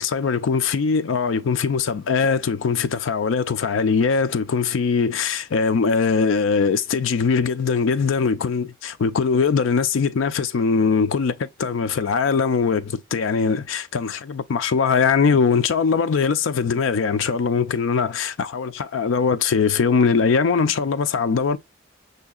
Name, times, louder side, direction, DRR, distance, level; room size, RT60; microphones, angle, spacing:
voice 1, 0.0-21.6, left 5 dB, 90° left, 0.4 m, -21 dB
6.2 x 2.8 x 2.3 m
head